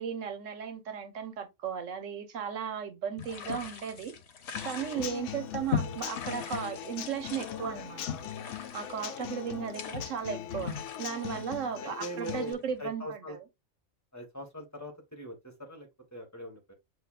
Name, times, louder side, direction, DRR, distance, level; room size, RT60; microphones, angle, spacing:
voice 1, 0.0-4.1 4.6-8.2 8.7-13.4, right 7 dB, 85° right, 1.2 m, -36 dB
sound 1, 3.2-12.7, left 7 dB, 60° left, 1.0 m, -40 dB
Human voice / Acoustic guitar / Drum, 4.5-12.5, left 10 dB, 90° left, 1.0 m, -41 dB
voice 2, 4.9-5.2 9.1-9.2 11.3-11.5 11.8-13.4 14.1-16.7, equal, 15° left, 1.3 m, -42 dB
7.9 x 2.7 x 2.3 m
omnidirectional pair, 1.3 m